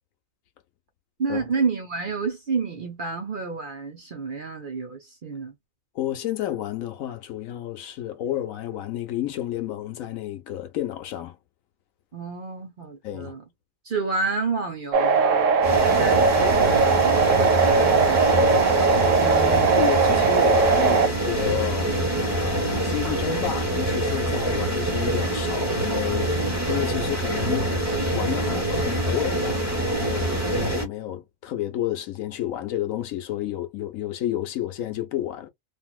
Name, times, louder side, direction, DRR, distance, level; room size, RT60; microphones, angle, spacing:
voice 1, 1.2-5.5 12.1-13.4 13.8-15.6 16.0-19.1, right 4 dB, 45° right, 0.7 m, -30 dB
voice 2, 5.9-11.4 13.0-13.3 19.2-26.4 26.7-27.8 28.1-35.5, left 12 dB, 75° left, 1.1 m, -31 dB
sound 1, 14.9-21.1, right 4 dB, 70° right, 1.0 m, -19 dB
sound 2, 15.6-30.8, right 1 dB, 15° right, 1.0 m, -25 dB
2.9 x 2.6 x 2.4 m
omnidirectional pair, 1.5 m